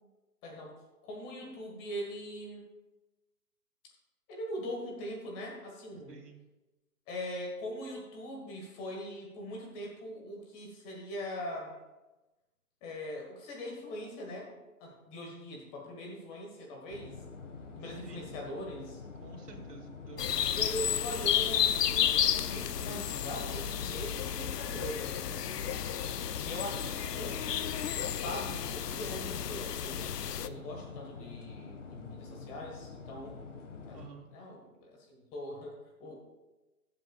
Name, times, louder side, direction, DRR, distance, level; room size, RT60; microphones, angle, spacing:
voice 1, 0.4-0.7 1.0-2.6 4.3-6.2 7.1-11.7 12.8-17.2 17.7-19.0 20.5-25.9 26.4-27.4 28.2-33.4 33.8-34.0 34.3-36.2, equal, 15° left, 0 dB, 1.5 m, -41 dB
voice 2, 6.1-6.4 17.8-18.4 19.2-20.9 33.9-34.3, right 4 dB, 80° right, 0 dB, 2.7 m, -51 dB
sound 1, 16.9-34.1, left 4 dB, 50° left, 1.6 m, -47 dB
sound 2, 20.2-30.5, left 9 dB, 90° left, 0.7 m, -32 dB
19.5 x 7.6 x 2.4 m, 1.1 s
hypercardioid pair, 160°, 46 cm